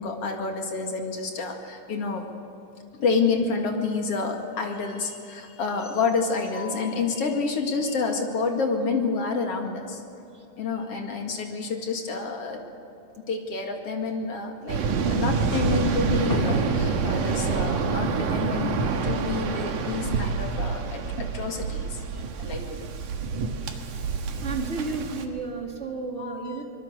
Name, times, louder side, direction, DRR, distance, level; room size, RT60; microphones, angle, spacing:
voice 1, 0.0-2.2 3.0-10.0 10.6-12.6 13.3-22.0 22.4-22.9 26.2-26.6, left 4 dB, 45° left, 2 dB, 2.7 m, -28 dB
Waves surf, 14.7-25.2, right 5 dB, 65° right, 2.9 m, -27 dB
voice 2, 24.4-26.6, right 4 dB, 25° right, 1 dB, 1.9 m, -32 dB
25.0 x 21.5 x 6.8 m, 2.8 s
omnidirectional pair, 4.2 m